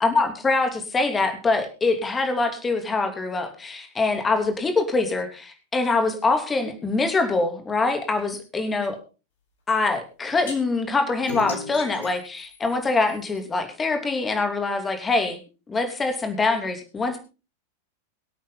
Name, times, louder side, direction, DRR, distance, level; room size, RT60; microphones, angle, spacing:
voice 1, 0.0-9.0 9.7-15.4 15.7-17.2, left 3 dB, 15° left, 6 dB, 3.0 m, -24 dB
sound 1, 10.4-10.6 11.3-13.5, left 4 dB, 60° left, 4.8 m, -36 dB
24.0 x 8.6 x 4.0 m, 0.33 s
figure-of-eight pair, 90°, 0 cm